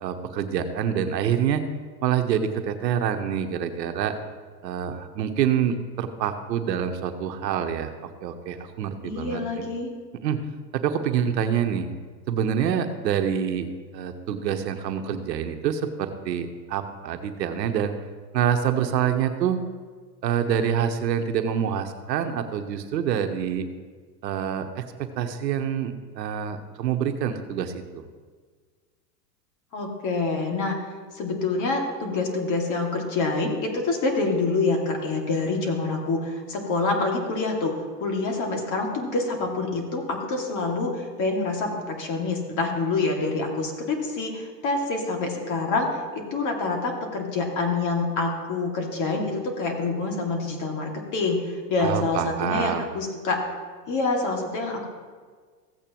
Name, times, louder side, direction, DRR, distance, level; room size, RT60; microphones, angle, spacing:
voice 1, 0.0-1.6 2.0-4.1 4.6-9.4 10.2-10.4 10.7-11.9 12.3-18.0 18.3-19.6 20.2-23.7 24.2-28.0 51.8-52.9, right 8 dB, 80° right, 7 dB, 1.1 m, -26 dB
voice 2, 9.0-9.9 29.7-30.7 31.1-37.7 38.0-53.4 53.9-54.9, left 3 dB, 35° left, 1 dB, 2.4 m, -26 dB
15.5 x 8.5 x 3.0 m, 1.5 s
hypercardioid pair, 115°, 49 cm